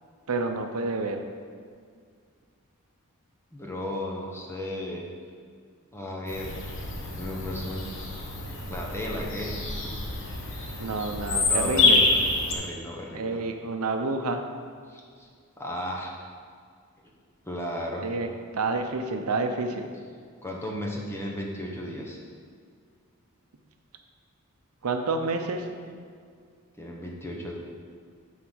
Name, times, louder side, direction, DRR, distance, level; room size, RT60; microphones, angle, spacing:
voice 1, 0.3-1.2 10.8-12.0 13.1-14.4 18.0-18.3 18.5-19.9 24.8-25.6, right 3 dB, 75° right, 5 dB, 0.7 m, -28 dB
voice 2, 3.5-5.1 5.9-6.6 6.9-7.9 8.7-9.5 9.8-9.9 11.5-12.2 12.5-13.4 14.9-15.3 15.6-16.1 17.4-18.1 20.4-22.2 26.8-27.5, left 1 dB, 10° left, -2 dB, 1.1 m, -35 dB
Bird vocalization bird call bird song, 6.3-12.5, left 3 dB, 60° left, 1.2 m, -27 dB
9.4 x 4.0 x 6.3 m, 2.1 s
head